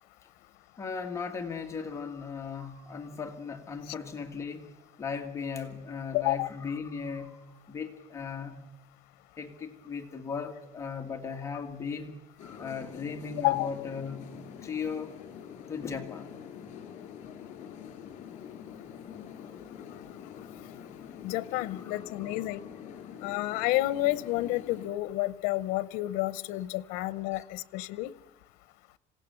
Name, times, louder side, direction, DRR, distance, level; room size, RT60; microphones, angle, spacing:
voice 1, 0.8-8.7 9.4-15.2 15.7-16.3 21.8-22.6, left 5 dB, 20° left, 3 dB, 1.9 m, -37 dB
voice 2, 6.1-6.5 13.4-13.7 21.2-22.6 23.2-28.1, left 17 dB, 90° left, 17 dB, 0.8 m, -30 dB
sound 1, 12.4-24.9, left 8 dB, 55° left, 3.8 m, -45 dB
27.0 x 17.5 x 6.9 m, 1.0 s
cardioid pair, 155°, 14 cm